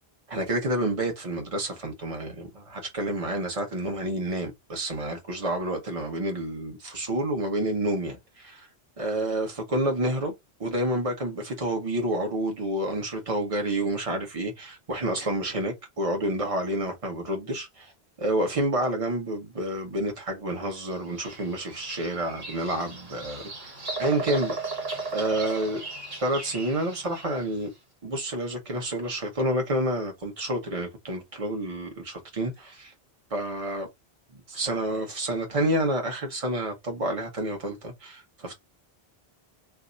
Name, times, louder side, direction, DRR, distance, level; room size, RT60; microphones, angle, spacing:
voice 1, 0.3-8.7 9.0-10.3 10.6-17.9 18.2-23.4 24.0-24.6 25.1-25.8 26.2-27.7 28.0-32.9 33.3-33.9 34.3-38.5, right 1 dB, 35° right, 1.1 m, -29 dB
Bird vocalization bird call bird song, 20.9-27.5, right 3 dB, 70° right, 1.3 m, -36 dB
2.7 x 2.3 x 3.9 m
omnidirectional pair, 1.0 m